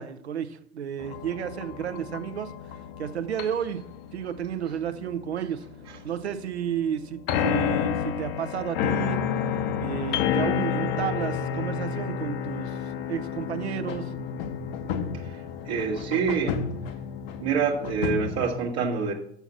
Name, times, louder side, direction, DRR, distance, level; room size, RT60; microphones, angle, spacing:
voice 1, 0.0-3.8 4.1-5.6 6.0-9.2 9.8-12.8 13.1-14.1, right 8 dB, 75° right, 0.8 m, -32 dB
sound 1, 1.0-18.6, left 7 dB, 55° left, 0.8 m, -30 dB
voice 2, 15.1-16.6 17.4-19.1, right 6 dB, 55° right, 1.4 m, -27 dB
7.0 x 5.8 x 7.3 m
figure-of-eight pair, 65°, 33 cm